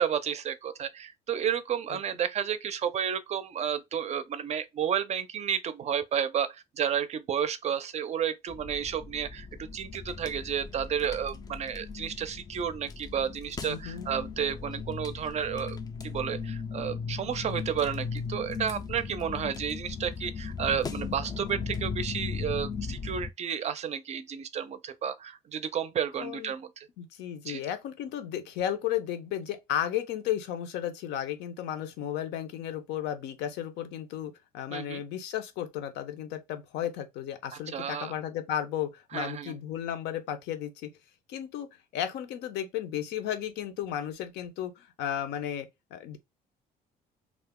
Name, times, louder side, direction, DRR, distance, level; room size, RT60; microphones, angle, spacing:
voice 1, 0.0-15.8 16.0-26.9 27.5-27.6 34.7-35.0 37.7-38.1 39.1-39.5, right 8 dB, 40° right, 0.4 m, -31 dB
sound 1, 8.5-23.3, left 5 dB, 25° left, 0.3 m, -37 dB
voice 2, 13.7-14.1 26.2-26.5 27.0-40.9 41.3-41.7 41.9-46.2, left 10 dB, 85° left, 0.6 m, -34 dB
2.4 x 2.0 x 3.5 m
cardioid pair, 110°, 17 cm